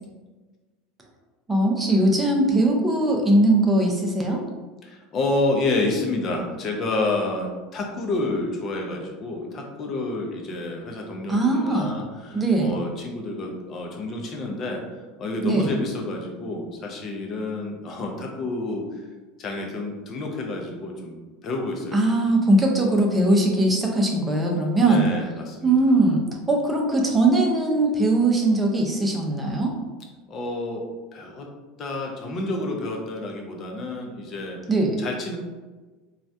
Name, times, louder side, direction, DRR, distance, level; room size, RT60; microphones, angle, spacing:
voice 1, 1.5-4.4 11.3-11.9 12.3-12.8 15.4-15.7 21.9-25.0 25.6-26.2 26.5-29.7 34.7-35.0, right 2 dB, 15° right, 0 dB, 0.7 m, -20 dB
voice 2, 4.8-14.8 15.2-19.1 19.4-22.1 24.8-25.9 30.3-30.8 31.1-31.5 31.8-34.6 35.0-35.4, left 2 dB, 40° left, 1 dB, 0.7 m, -29 dB
3.1 x 2.4 x 2.6 m, 1.3 s
figure-of-eight pair, 75°, 0 cm